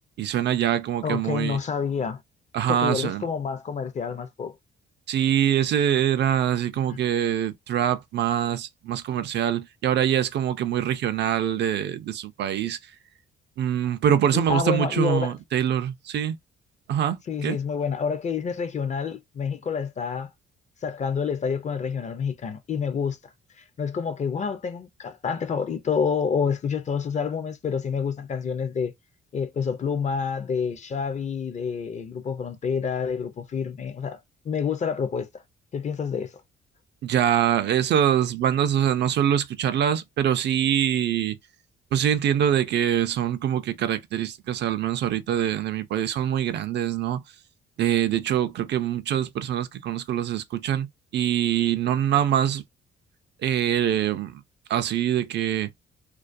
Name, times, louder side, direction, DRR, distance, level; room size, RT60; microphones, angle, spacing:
voice 1, 0.2-1.6 2.5-3.2 5.1-12.8 13.6-16.4 16.9-17.6 37.0-41.4 41.9-47.2 47.8-50.9 51.1-52.6 53.4-54.4 54.7-55.7, right 10 dB, 60° right, 0.4 m, -24 dB
voice 2, 1.0-2.2 2.7-4.5 6.9-7.0 14.3-15.3 17.3-20.3 20.8-23.2 23.6-28.9 29.3-34.2 34.4-35.4 35.7-36.3, left 6 dB, 35° left, 0.5 m, -28 dB
2.3 x 2.2 x 2.5 m
cardioid pair, 90°, 20 cm